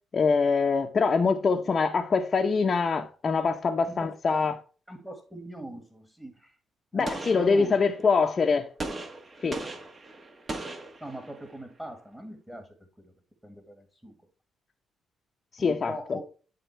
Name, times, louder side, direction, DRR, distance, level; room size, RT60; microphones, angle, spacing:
voice 1, 0.1-4.6 6.9-8.7 9.4-9.6 15.5-16.2, left 4 dB, 40° left, 0.9 m, -24 dB
voice 2, 3.9-4.2 4.9-6.6 6.9-7.7 9.4-9.6 11.0-13.1 13.4-14.1 15.6-16.2, right 1 dB, 10° right, 1.9 m, -42 dB
Gunshot gunfire, 7.1-8.1 8.8-11.6, right 2 dB, 35° right, 1.5 m, -38 dB
11.0 x 3.8 x 4.5 m
cardioid pair, 90°, 0 cm